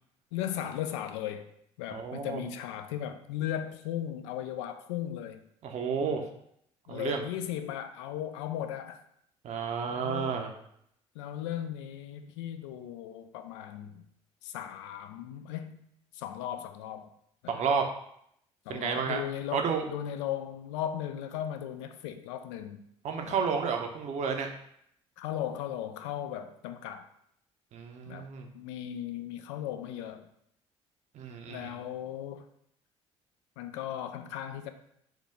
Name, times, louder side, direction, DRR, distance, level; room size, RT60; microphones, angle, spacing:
voice 1, 0.3-1.5 1.8-5.4 5.9-6.2 6.9-9.0 9.9-10.5 11.2-14.0 14.4-15.8 16.1-17.1 17.4-17.6 18.7-22.8 23.2-23.5 25.2-27.1 28.1-28.3 28.5-30.3 31.5-32.5 33.6-34.7, left 10 dB, 70° left, 8 dB, 0.4 m, -37 dB
voice 2, 1.9-2.4 5.6-6.2 6.9-7.2 9.4-10.5 17.5-17.8 18.7-19.2 19.5-19.9 23.0-24.5 27.7-28.5 31.1-31.7, right 6 dB, 45° right, 3 dB, 0.6 m, -31 dB
4.5 x 2.2 x 3.5 m, 0.73 s
figure-of-eight pair, 55°, 16 cm